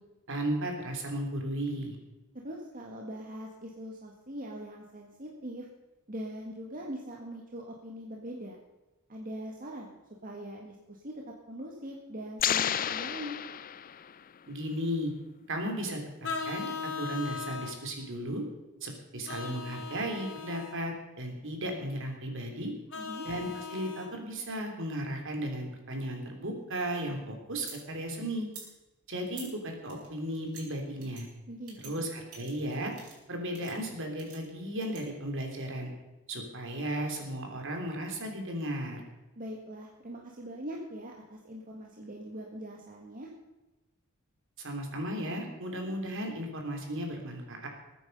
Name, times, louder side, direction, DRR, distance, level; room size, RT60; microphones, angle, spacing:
voice 1, 0.3-2.0 14.5-15.1 15.5-16.7 17.0-18.4 18.8-22.7 23.2-28.5 29.1-31.3 31.8-32.9 33.3-35.9 36.3-39.0 44.6-47.7, right 1 dB, 60° right, 3 dB, 3.2 m, -35 dB
voice 2, 2.3-5.7 6.1-8.6 9.1-13.4 22.9-23.3 31.5-32.0 39.3-43.3, equal, 40° right, -1 dB, 1.7 m, -42 dB
sound 1, 12.4-14.3, left 10 dB, 40° left, 0.5 m, -31 dB
Vehicle horn car horn honking, 16.2-17.8 19.3-20.8 22.9-24.1, left 5 dB, 60° left, 2.6 m, -38 dB
sound 2, 26.5-27.8 28.4-28.7 29.3-29.5 29.8-30.6 31.0-31.2 31.7-31.9 32.3-33.3 33.5-33.7 34.2-35.0, right 5 dB, 80° right, 5.0 m, -48 dB
21.0 x 9.3 x 5.4 m, 1.1 s
head